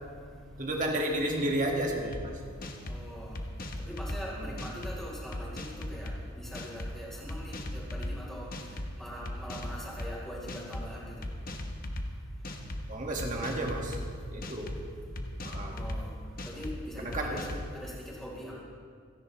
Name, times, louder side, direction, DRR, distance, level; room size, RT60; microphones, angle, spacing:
voice 1, 0.3-2.4 4.4-4.7 12.6-14.0 14.2-14.8 15.0-15.8 17.0-17.4, right 1 dB, 40° right, 0 dB, 1.9 m, -33 dB
sound 1, 2.1-2.2 2.6-3.0 3.4-4.2 4.6-4.9 5.3-6.2 6.5-6.9 7.3-8.1 8.5-8.9 9.3-10.1 10.5-10.9 11.2-12.1 12.4-12.8 13.2-14.0 14.4-14.8 15.2-16.0 16.4-16.7 17.1-17.7, left 1 dB, 45° left, 1.1 m, -37 dB
voice 2, 2.9-3.4 3.8-8.5 9.0-11.2 15.7-16.1 16.4-17.4 17.7-18.5, equal, ahead, -6 dB, 4.0 m, -42 dB
28.5 x 10.5 x 3.3 m, 2.1 s
head